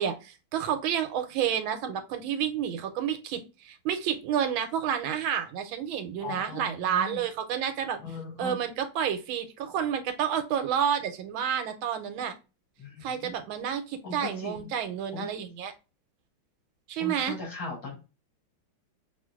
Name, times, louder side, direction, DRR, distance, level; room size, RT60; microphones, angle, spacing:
voice 1, 0.0-8.0 8.4-12.3 13.0-15.7 16.9-17.4, right 9 dB, 80° right, 8 dB, 1.4 m, -30 dB
voice 2, 6.2-7.2 8.0-8.6 12.8-13.3 14.0-14.7 15.1-15.3 17.0-18.0, left 3 dB, 75° left, -3 dB, 3.0 m, -38 dB
6.0 x 2.5 x 2.3 m, 0.30 s
omnidirectional pair, 2.2 m